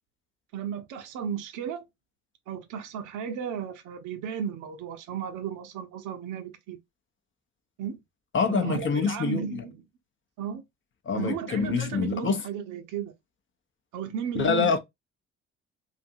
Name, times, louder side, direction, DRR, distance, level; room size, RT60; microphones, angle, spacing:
voice 1, 0.5-1.9 2.5-6.8 7.8-8.0 8.5-9.8 10.4-10.6 11.1-13.1 13.9-14.8, right 8 dB, 60° right, 0.7 m, -34 dB
voice 2, 8.3-9.6 11.1-12.4 14.4-14.8, left 6 dB, 35° left, 0.6 m, -26 dB
2.6 x 2.4 x 2.6 m
figure-of-eight pair, 45°, 35 cm